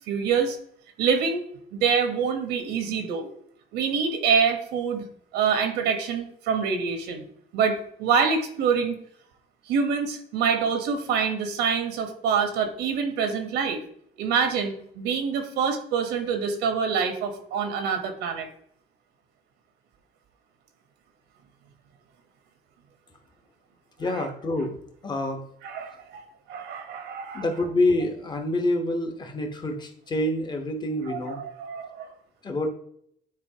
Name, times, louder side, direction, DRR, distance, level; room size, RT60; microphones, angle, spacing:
voice 1, 0.1-0.6 1.0-1.4 1.7-3.3 3.7-5.0 5.3-7.2 7.5-9.0 9.7-13.8 14.2-18.5 24.1-24.3 25.6-26.2 26.5-27.5 31.1-32.1, right 6 dB, 85° right, 6 dB, 1.1 m, -26 dB
voice 2, 24.0-24.8 25.0-25.4 27.3-31.4 32.4-32.7, left 1 dB, 25° left, 4 dB, 1.1 m, -27 dB
9.6 x 4.1 x 2.9 m, 0.68 s
cardioid pair, 110°, 17 cm